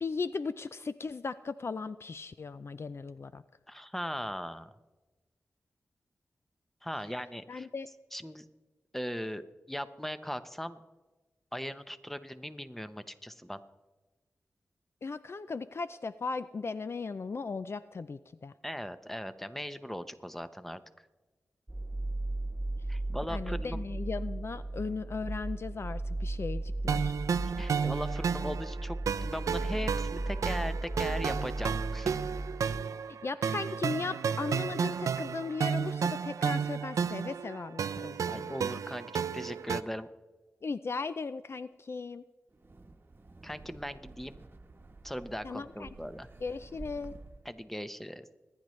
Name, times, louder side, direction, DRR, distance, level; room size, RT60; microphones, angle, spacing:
voice 1, 0.0-3.4 7.5-7.9 15.0-18.5 23.3-27.1 33.2-38.5 40.6-42.2 45.4-45.9 46.4-47.1, left 4 dB, 50° left, 13 dB, 0.4 m, -37 dB
voice 2, 3.7-4.7 6.8-7.7 8.1-8.4 8.9-10.8 11.5-13.6 18.6-20.8 22.9-23.8 27.6-32.2 38.3-40.1 43.4-44.4 45.0-46.3 47.4-48.2, equal, 5° left, 11 dB, 0.9 m, -39 dB
sound 1, 21.7-32.8, right 2 dB, 15° right, 0.3 m, -36 dB
sound 2, 26.9-39.8, right 6 dB, 85° right, 0.4 m, -32 dB
Wind, 42.5-47.6, right 3 dB, 40° right, 1.1 m, -51 dB
25.0 x 10.5 x 3.2 m, 1.2 s
cardioid pair, 60°, 5 cm